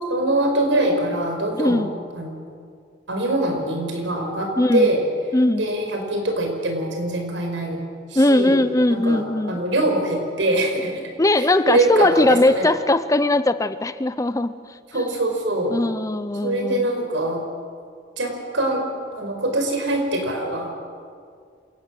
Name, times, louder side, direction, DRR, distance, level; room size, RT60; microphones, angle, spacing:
voice 1, 0.1-1.8 2.1-2.4 3.1-5.0 5.6-7.8 8.1-8.6 8.9-9.2 9.5-10.9 11.4-12.7 14.9-15.7 16.4-17.4 18.2-18.8 19.1-20.7, right 1 dB, 85° right, 3 dB, 5.1 m, -23 dB
voice 2, 1.6-1.9 4.6-4.9 5.3-5.7 8.1-9.6 11.2-15.1 15.7-16.9, left 2 dB, 15° left, 13 dB, 0.6 m, -20 dB
27.5 x 17.5 x 7.6 m, 2.2 s
head